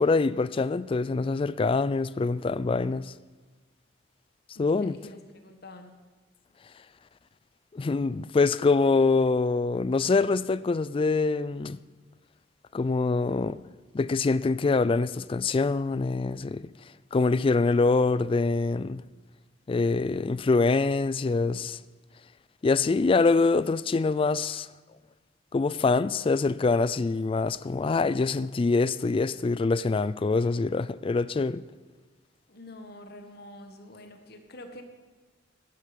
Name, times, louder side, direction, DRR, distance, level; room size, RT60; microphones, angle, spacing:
voice 1, 0.0-3.1 4.6-5.0 7.7-11.8 12.7-13.6 13.9-16.7 17.1-19.0 19.7-21.8 22.6-24.7 25.5-31.6, left 3 dB, 30° left, 0.3 m, -25 dB
voice 2, 4.5-5.9 32.5-34.8, left 1 dB, 55° left, 1.6 m, -46 dB
15.5 x 11.0 x 5.3 m
head